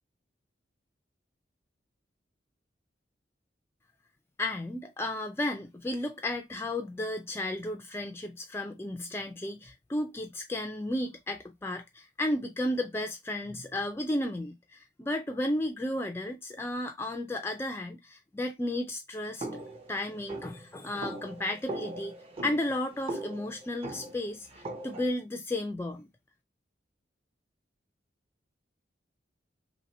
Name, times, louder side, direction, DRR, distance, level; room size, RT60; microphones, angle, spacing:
voice 1, 4.4-19.5 19.9-22.1 22.4-26.1, left 1 dB, 15° left, 0.3 m, -33 dB
sound 1, 19.4-25.2, right 2 dB, 30° right, 0.7 m, -40 dB
2.9 x 2.7 x 4.1 m
head